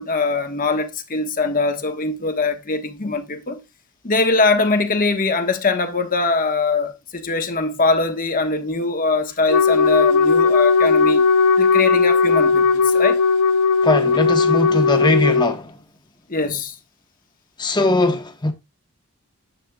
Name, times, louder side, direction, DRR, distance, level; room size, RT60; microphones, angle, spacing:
voice 1, 0.0-3.6 4.0-11.2 11.6-13.2 16.3-16.7, left 3 dB, 40° left, 1.3 m, -22 dB
Wind instrument woodwind instrument, 9.5-15.6, left 5 dB, 85° left, 0.6 m, -17 dB
voice 2, 13.8-15.8 17.6-18.5, left 2 dB, 20° left, 1.1 m, -20 dB
10.0 x 7.6 x 2.3 m
head